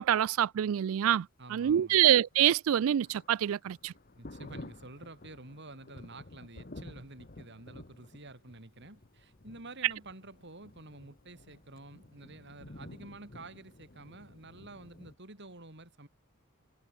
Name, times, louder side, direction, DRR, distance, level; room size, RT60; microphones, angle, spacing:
voice 1, 0.0-3.9, right 10 dB, 70° right, 0.3 m, -26 dB
voice 2, 1.4-2.0 4.1-16.1, right 2 dB, 55° right, 4.8 m, -49 dB
Thunder, 2.3-15.1, left 2 dB, 45° left, 1.3 m, -51 dB
head